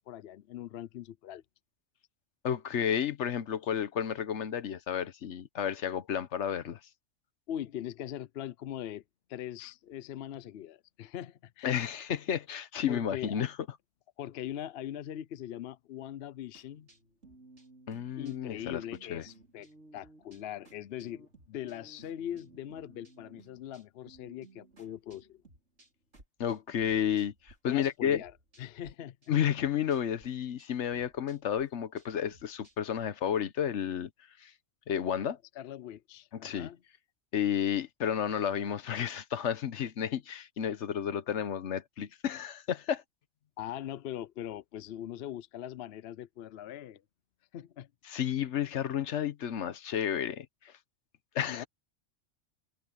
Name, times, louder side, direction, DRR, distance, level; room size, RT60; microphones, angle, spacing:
voice 1, 0.0-1.4 7.5-9.0 9.3-11.9 12.9-13.4 14.2-16.9 18.2-19.7 19.9-25.4 27.6-28.3 28.6-29.2 35.6-36.8 43.6-47.0 47.5-47.9 51.5-51.6, left 11 dB, 65° left, 0.8 m, -41 dB
voice 2, 2.4-6.8 11.6-13.5 17.9-18.8 19.1-19.2 26.4-28.2 29.3-34.1 34.4-34.5 34.9-35.4 36.4-36.7 37.3-43.0 48.1-50.7 51.3-51.7, left 9 dB, 80° left, 1.2 m, -31 dB
sound 1, 16.5-27.6 27.8-28.9 29.2-33.0, right 2 dB, 90° right, 5.7 m, -59 dB
omnidirectional pair, 1.2 m